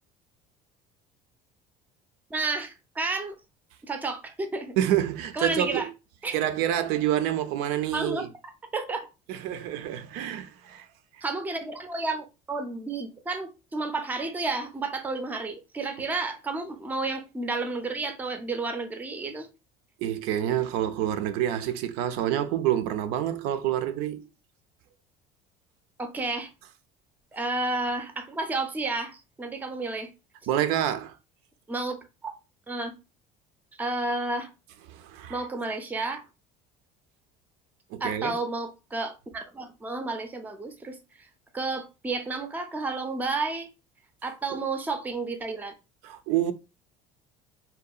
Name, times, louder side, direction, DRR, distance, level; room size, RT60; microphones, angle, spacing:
voice 1, 2.3-3.4 3.8-4.8 5.3-5.9 6.2-6.4 7.9-9.1 11.2-19.5 26.0-26.5 27.3-30.1 31.7-32.3 32.7-32.9 33.8-34.5 35.3-36.2 38.0-41.0 41.5-43.7 44.2-45.7, right 3 dB, 10° right, 0.4 m, -31 dB
voice 2, 4.8-5.9 6.3-8.3 9.3-10.9 20.0-24.3 30.5-31.2 34.9-35.4 37.9-38.3 46.0-46.5, right 11 dB, 75° right, 0.4 m, -27 dB
2.7 x 2.1 x 2.3 m
cardioid pair, 120°, 17 cm